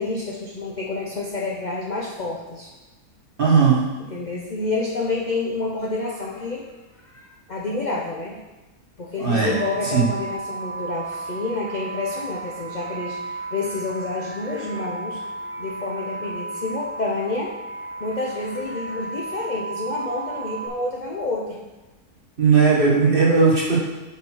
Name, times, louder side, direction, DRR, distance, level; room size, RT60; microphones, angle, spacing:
voice 1, 0.0-2.7 3.5-3.7 4.1-6.7 7.0-8.4 9.0-15.2 15.6-17.6 18.0-21.6 22.5-22.6, left 3 dB, 45° left, -2 dB, 0.6 m, -29 dB
voice 2, 3.4-3.8 9.2-9.5 9.8-10.0 22.4-23.8, right 5 dB, 35° right, -4 dB, 1.5 m, -17 dB
sound 1, 9.4-20.7, right 3 dB, 10° right, 0.6 m, -34 dB
5.9 x 5.3 x 4.5 m, 1.1 s
omnidirectional pair, 1.6 m